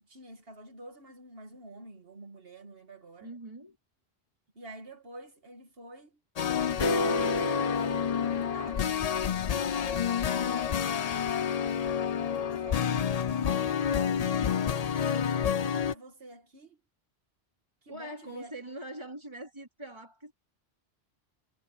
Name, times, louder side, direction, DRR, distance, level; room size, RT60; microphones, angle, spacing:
voice 1, 0.0-3.3 4.5-6.2 6.5-10.8 11.1-12.1 12.5-13.1 13.9-14.9 15.4-16.8 17.8-18.5, right 2 dB, 60° right, 2.4 m, -48 dB
voice 2, 3.2-3.8 17.9-20.3, right 1 dB, 25° right, 3.3 m, -43 dB
sound 1, 6.4-15.9, left 8 dB, 50° left, 0.5 m, -29 dB
sound 2, 6.8-9.1, left 1 dB, 30° left, 1.2 m, -32 dB
omnidirectional pair, 1.1 m